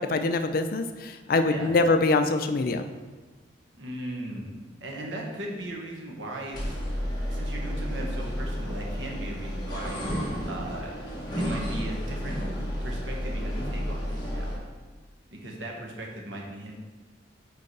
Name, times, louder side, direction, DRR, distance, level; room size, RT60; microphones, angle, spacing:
voice 1, 0.0-2.8, left 3 dB, 50° left, 8 dB, 0.4 m, -24 dB
voice 2, 3.8-6.8 7.3-10.9 11.4-12.4 12.8-14.5 15.3-16.7, right 1 dB, 80° right, 0 dB, 1.2 m, -38 dB
sound 1, 6.5-14.6, equal, 25° left, 1.3 m, -31 dB
5.2 x 4.6 x 4.7 m, 1.3 s
head